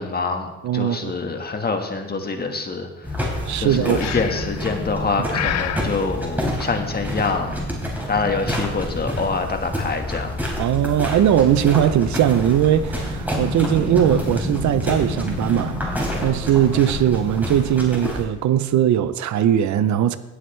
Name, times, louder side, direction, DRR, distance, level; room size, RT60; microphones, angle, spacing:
voice 1, 0.0-3.1 3.6-7.6 8.1-10.4, left 4 dB, 30° left, 1.5 m, -25 dB
voice 2, 0.6-1.1 3.5-4.0 10.6-15.8 16.2-20.2, right 10 dB, 70° right, 0.7 m, -19 dB
sound 1, 3.0-18.3, left 1 dB, 5° right, 4.0 m, -27 dB
Breathing, 4.0-4.6 5.3-5.9, left 11 dB, 60° left, 0.6 m, -27 dB
17.5 x 8.1 x 3.3 m
cardioid pair, 90°, 30 cm